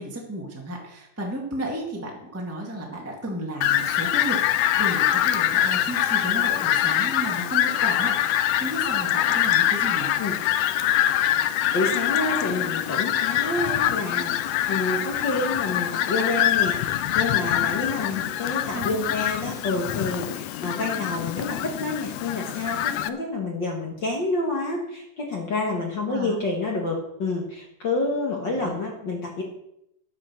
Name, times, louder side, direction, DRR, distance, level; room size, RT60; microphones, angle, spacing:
voice 1, 0.0-10.1 18.2-18.3 18.7-18.9 26.1-26.4 28.5-28.7, right 1 dB, 5° right, -2 dB, 1.5 m, -33 dB
Fowl, 3.6-23.1, left 12 dB, 80° left, 1.5 m, -24 dB
voice 2, 11.7-29.4, left 2 dB, 45° left, 0 dB, 1.8 m, -28 dB
10.0 x 8.8 x 6.4 m, 0.80 s
omnidirectional pair, 3.6 m